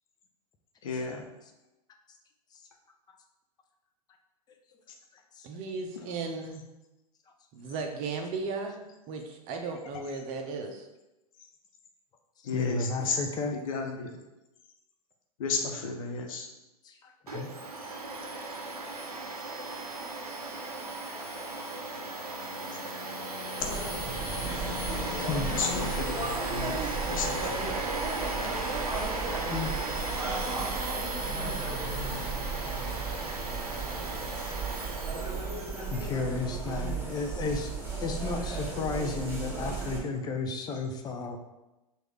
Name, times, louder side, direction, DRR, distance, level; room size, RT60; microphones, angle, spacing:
voice 1, 0.8-1.2 6.0-6.1 11.4-11.5 12.4-13.2 13.5-14.2 15.4-16.5 17.8-18.0 22.7-22.8 23.6-23.7 25.6-27.8, left 4 dB, 60° left, 2 dB, 0.9 m, -34 dB
voice 2, 5.4-6.6 7.5-10.9, right 4 dB, 40° right, 3 dB, 0.7 m, -36 dB
voice 3, 12.5-13.6 16.8-17.5 24.7-24.8 25.2-25.5 29.5-29.7 35.9-37.7 38.0-41.4, left 4 dB, 20° left, 3 dB, 0.6 m, -33 dB
Domestic sounds home sounds, 17.3-36.1, right 2 dB, 85° right, 0.7 m, -36 dB
Fixed-wing aircraft airplane, 21.1-25.9, left 6 dB, 90° left, 0.5 m, -43 dB
sound 1, 23.6-40.0, right 4 dB, 10° right, 1.5 m, -35 dB
6.1 x 2.5 x 3.3 m, 0.98 s
figure-of-eight pair, 95°, 19 cm